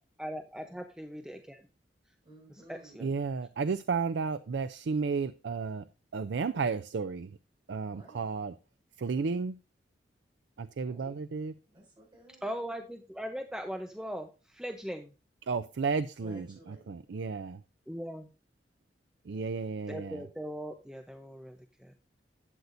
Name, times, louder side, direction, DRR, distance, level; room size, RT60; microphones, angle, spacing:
voice 1, 0.2-1.6 2.5-3.1 12.4-15.1 17.9-18.3 19.9-21.9, equal, 5° right, 0.7 m, -40 dB
voice 2, 2.2-3.0 7.9-8.2 10.8-11.2 11.7-12.5 16.2-17.0, right 1 dB, 30° right, 6.2 m, -54 dB
voice 3, 3.0-5.8 6.1-7.3 7.7-8.5 9.0-9.6 10.6-11.5 15.5-16.5 16.9-17.6 19.3-20.2, right 5 dB, 85° right, 0.4 m, -32 dB
12.0 x 8.2 x 2.6 m
head